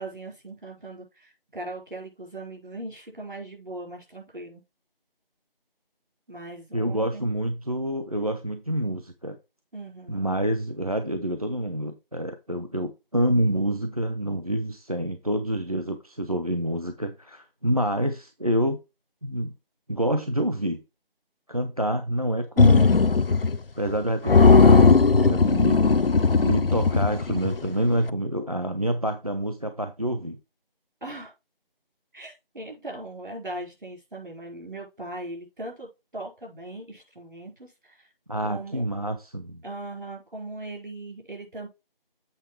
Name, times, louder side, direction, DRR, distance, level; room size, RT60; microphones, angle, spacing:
voice 1, 0.0-4.6 6.3-7.3 9.7-10.3 31.0-31.3 32.1-38.1 38.5-38.8 39.6-41.7, right 2 dB, 60° right, 4.7 m, -39 dB
voice 2, 6.7-9.4 10.1-18.8 19.2-19.5 19.9-20.8 21.5-23.0 23.8-30.4 38.3-39.6, right 1 dB, 40° right, 0.6 m, -27 dB
sound 1, 22.6-23.6 23.9-24.0 24.3-27.7, left 4 dB, 70° left, 0.7 m, -17 dB
8.1 x 4.5 x 4.6 m
figure-of-eight pair, 175°, 29 cm